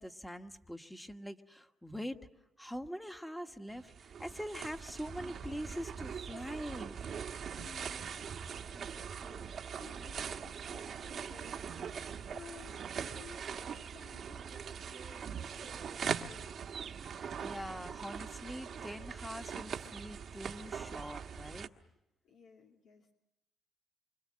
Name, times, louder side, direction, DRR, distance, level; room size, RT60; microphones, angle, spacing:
voice 1, 0.0-2.2 2.6-7.0 17.1-21.7, equal, 5° left, 6 dB, 1.5 m, -43 dB
sound 1, 3.7-21.7, right 7 dB, 60° right, 1.3 m, -42 dB
voice 2, 7.6-16.5 22.2-23.1, left 5 dB, 80° left, 0 dB, 2.5 m, -57 dB
27.5 x 25.0 x 7.6 m, 0.87 s
cardioid pair, 90°, 0 cm